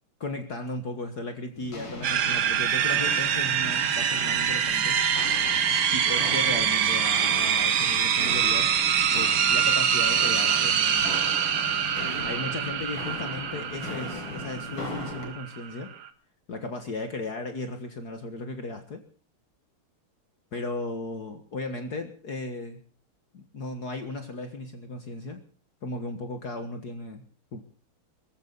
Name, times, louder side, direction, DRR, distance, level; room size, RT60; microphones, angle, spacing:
voice 1, 0.2-5.1 5.8-8.7 9.1-11.1 12.2-15.9 16.5-19.0 20.5-22.8 23.3-25.4 25.8-27.6, left 2 dB, 50° left, 6 dB, 2.1 m, -36 dB
Walk footsteps, 1.5-15.3, left 2 dB, 65° left, 4.5 m, -38 dB
sound 1, 2.0-16.1, right 8 dB, 90° right, 2.3 m, -25 dB
23.0 x 15.0 x 4.1 m, 0.40 s
omnidirectional pair, 2.4 m